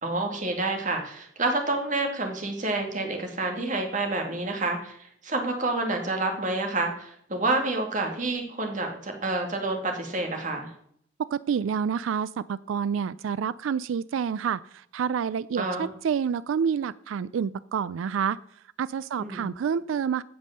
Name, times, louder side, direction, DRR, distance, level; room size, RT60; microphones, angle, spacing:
voice 1, 0.0-10.7 15.6-15.9 19.2-19.5, right 2 dB, 40° right, 3 dB, 2.2 m, -28 dB
voice 2, 11.2-18.4 18.8-20.2, right 7 dB, 90° right, 18 dB, 0.3 m, -28 dB
16.0 x 5.4 x 6.5 m, 0.68 s
head